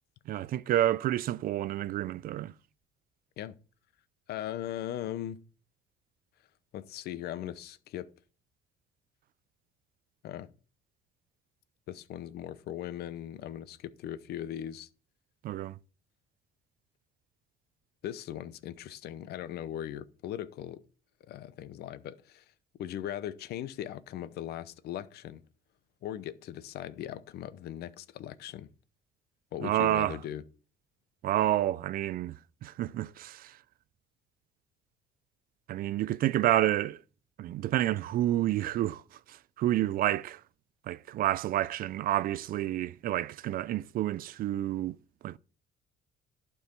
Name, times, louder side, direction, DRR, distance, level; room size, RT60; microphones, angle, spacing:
voice 1, 0.3-2.5 15.4-15.8 29.6-30.2 31.2-32.4 32.6-33.6 35.7-37.0 37.4-39.0 39.3-40.4 40.9-45.0 45.2-45.4, right 13 dB, 60° right, 0.4 m, -29 dB
voice 2, 4.3-5.4 6.7-8.1 10.2-10.5 11.9-14.9 18.0-20.8 21.2-22.4 22.8-25.4 26.0-28.7 29.5-30.4, left 11 dB, 70° left, 0.7 m, -39 dB
11.5 x 4.7 x 5.9 m
cardioid pair, 110°, 17 cm